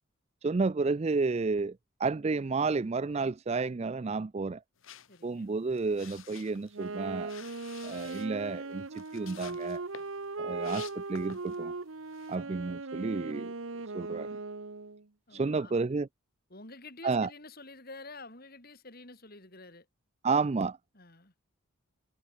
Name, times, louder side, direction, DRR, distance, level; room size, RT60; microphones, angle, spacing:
voice 1, 0.4-4.6 5.2-7.3 7.8-9.8 10.4-11.7 12.3-13.5 13.9-14.4 15.3-16.1 17.0-17.3 20.2-20.8, right 4 dB, 30° right, 0.3 m, -31 dB
sound 1, 4.8-11.7 12.0-12.4, left 9 dB, 65° left, 1.3 m, -51 dB
voice 2, 5.1-5.5 12.6-12.8 15.3-15.8 16.5-19.9 20.9-21.3, left 3 dB, 45° left, 4.2 m, -49 dB
Wind instrument woodwind instrument, 6.7-15.0, right 3 dB, 65° right, 1.0 m, -38 dB
head